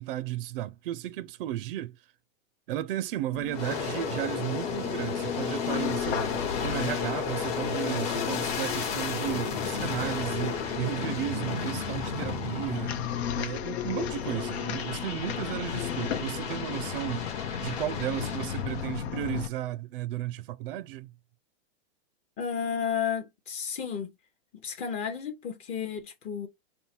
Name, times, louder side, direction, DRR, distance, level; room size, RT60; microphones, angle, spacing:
voice 1, 0.0-2.0 2.7-13.0 13.3-17.3 17.6-21.1, right 14 dB, 60° right, 0.4 m, -34 dB
sound 1, 3.3-19.5, left 9 dB, 90° left, 0.7 m, -36 dB
Aircraft, 3.5-13.5 14.0-19.0, left 5 dB, 40° left, 1.1 m, -33 dB
voice 2, 22.4-24.1 24.5-26.5, left 7 dB, 20° left, 0.7 m, -32 dB
5.3 x 2.1 x 4.4 m
supercardioid pair, 165°, 31 cm